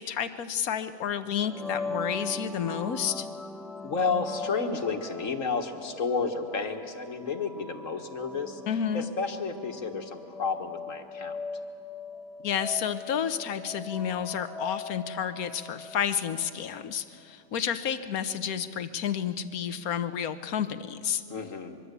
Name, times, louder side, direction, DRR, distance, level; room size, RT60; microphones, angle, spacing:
voice 1, 0.0-3.3 8.7-9.1 12.4-21.2, left 8 dB, 90° left, 11 dB, 1.4 m, -30 dB
sound 1, 1.4-17.0, left 2 dB, ahead, 0.4 m, -40 dB
voice 2, 3.8-8.6 8.9-11.4 21.3-21.8, left 4 dB, 65° left, 6 dB, 1.9 m, -31 dB
24.5 x 23.0 x 8.2 m, 2.5 s
omnidirectional pair, 1.5 m